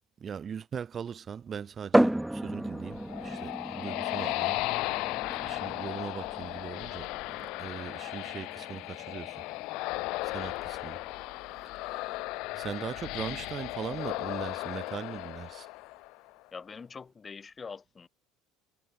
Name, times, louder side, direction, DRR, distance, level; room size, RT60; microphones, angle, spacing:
voice 1, 0.2-4.6 5.3-7.1 7.4-9.4 10.2-11.0 11.7-12.2 12.5-15.7, right 7 dB, 35° right, 1.0 m, -40 dB
sound 1, 1.9-15.4, right 1 dB, 5° right, 0.4 m, -35 dB
sound 2, 2.7-16.3, left 22 dB, 70° left, 0.3 m, -36 dB
voice 2, 16.5-18.1, left 5 dB, 25° left, 1.6 m, -44 dB
supercardioid pair, 95°, 0 cm